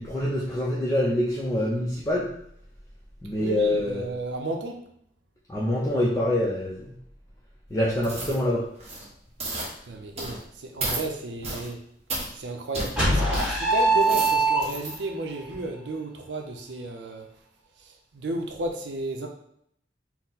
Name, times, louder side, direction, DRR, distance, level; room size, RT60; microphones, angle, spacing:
voice 1, 0.0-2.3 3.2-4.1 5.5-6.9 7.7-8.6, left 1 dB, 20° left, -5 dB, 0.5 m, -25 dB
voice 2, 3.4-4.8 9.9-11.8 12.3-17.3 18.1-19.3, right 2 dB, 90° right, 2 dB, 0.5 m, -33 dB
sound 1, 8.0-8.4 8.8-9.1 9.4-9.7 10.2-10.4 10.8-11.0 11.4-11.7 12.1-12.3 12.7-12.9 13.3-13.5 13.9-15.0 15.4-15.5, right 2 dB, 35° right, 1.0 m, -32 dB
sound 2, 13.0-15.1, right 2 dB, 5° right, 1.4 m, -22 dB
4.3 x 2.0 x 3.9 m, 0.70 s
head